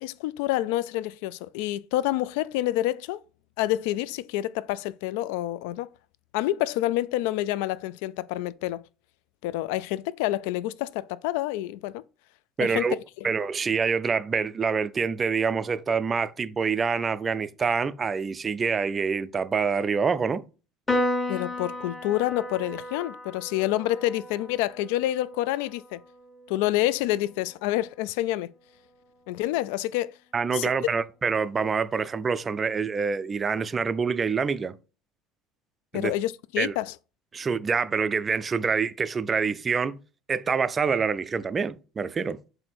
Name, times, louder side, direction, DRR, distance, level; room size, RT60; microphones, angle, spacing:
voice 1, 0.0-3.2 3.6-5.9 6.3-8.8 9.4-12.0 12.6-12.9 21.3-26.0 26.5-28.5 29.3-30.1 30.5-31.0 35.9-36.9, left 15 dB, 80° left, 0.3 m, -28 dB
voice 2, 12.6-12.9 13.2-20.4 30.3-34.8 35.9-36.1 36.6-36.7 37.3-40.0 40.3-42.4, right 5 dB, 15° right, 0.3 m, -26 dB
Piano, 20.9-27.6, left 1 dB, 10° left, 0.8 m, -34 dB
7.7 x 2.7 x 5.9 m
cardioid pair, 180°, 0 cm